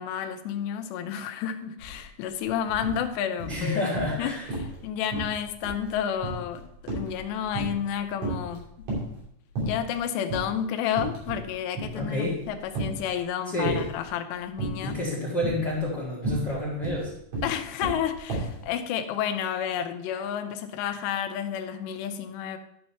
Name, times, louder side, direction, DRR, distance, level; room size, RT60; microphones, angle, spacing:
voice 1, 0.0-3.8 4.2-8.7 9.6-15.0 17.4-22.6, left 9 dB, 85° left, 7 dB, 2.9 m, -31 dB
sound 1, 1.8-2.0 2.3-3.0 3.4-4.2 4.5-4.8 5.1-7.9 8.2-9.2 9.6-10.0 10.3-10.5 10.9-11.5 11.8-13.1 13.6-14.1 14.6-15.0 15.4-18.6, right 2 dB, 45° right, 3.9 m, -33 dB
voice 2, 3.4-4.4 11.9-12.4 13.5-13.9 14.8-17.1, left 1 dB, 60° left, -4 dB, 1.0 m, -29 dB
12.0 x 5.6 x 4.4 m, 0.74 s
omnidirectional pair, 4.9 m